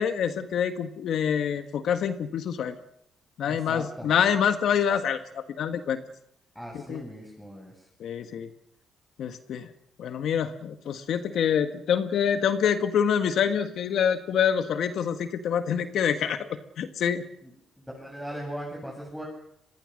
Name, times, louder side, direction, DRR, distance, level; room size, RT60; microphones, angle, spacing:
voice 1, 0.0-2.8 3.4-6.0 6.9-7.0 8.0-8.5 9.2-9.7 10.0-16.5 16.8-17.2, left 8 dB, 70° left, 8 dB, 1.6 m, -26 dB
voice 2, 3.4-4.4 6.5-7.9 17.4-17.5 17.8-19.2, equal, 5° left, -1 dB, 7.8 m, -39 dB
26.0 x 22.0 x 6.5 m, 0.76 s
cardioid pair, 90°, 0 cm